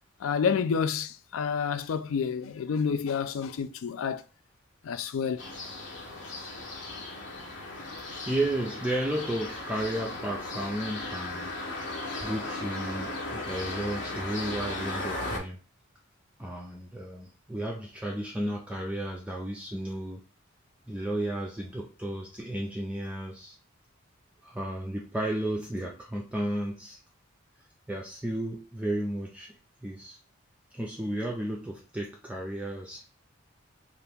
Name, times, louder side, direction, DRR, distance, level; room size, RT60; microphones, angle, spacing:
voice 1, 0.2-4.2 4.8-5.4, left 6 dB, 80° left, 0.4 m, -29 dB
sound 1, 5.4-15.4, left 2 dB, 60° left, 0.8 m, -36 dB
voice 2, 8.3-11.6 12.2-15.6 16.4-20.2 20.9-23.6 24.4-27.0 27.9-30.2 30.7-33.0, right 1 dB, 5° right, 0.3 m, -33 dB
2.8 x 2.4 x 3.4 m
head